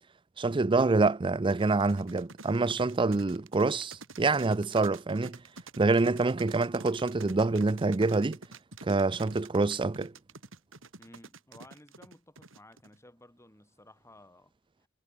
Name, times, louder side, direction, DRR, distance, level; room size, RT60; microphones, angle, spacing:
voice 1, 0.4-5.4 5.8-8.4 8.8-10.1, right 3 dB, 25° right, 0.5 m, -26 dB
sound 1, 1.5-13.0, right 3 dB, 75° right, 5.2 m, -48 dB
voice 2, 11.0-14.5, left 1 dB, 15° left, 4.6 m, -55 dB
head